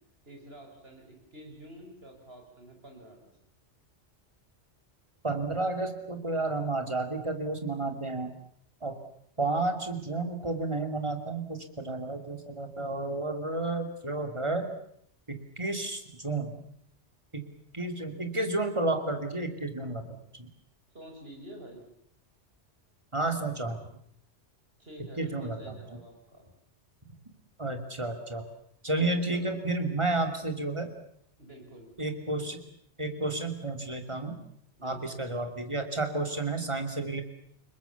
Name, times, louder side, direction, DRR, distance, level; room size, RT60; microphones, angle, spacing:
voice 1, 0.2-3.3 20.9-21.8 24.8-26.5 29.3-29.5 31.4-31.9 34.8-35.2, right 1 dB, 55° right, 3 dB, 5.9 m, -48 dB
voice 2, 5.2-8.3 8.8-9.0 9.4-14.7 15.3-16.5 17.3-17.5 17.7-20.5 23.1-23.8 25.2-25.7 27.6-28.4 28.8-30.9 32.0-32.6 33.0-34.4 34.8-37.2, right 2 dB, 25° right, 5 dB, 2.7 m, -31 dB
30.0 x 20.5 x 7.1 m, 0.66 s
omnidirectional pair, 1.2 m